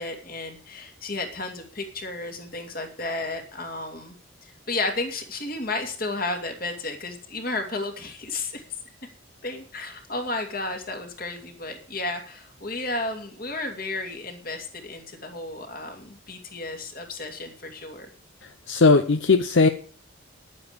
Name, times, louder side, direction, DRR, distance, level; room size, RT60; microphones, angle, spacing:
voice 1, 0.0-4.1 4.4-8.6 9.4-18.1, left 2 dB, 45° left, 4 dB, 2.6 m, -33 dB
voice 2, 18.4-19.7, left 4 dB, 70° left, 10 dB, 0.7 m, -19 dB
10.5 x 9.5 x 6.9 m, 0.43 s
head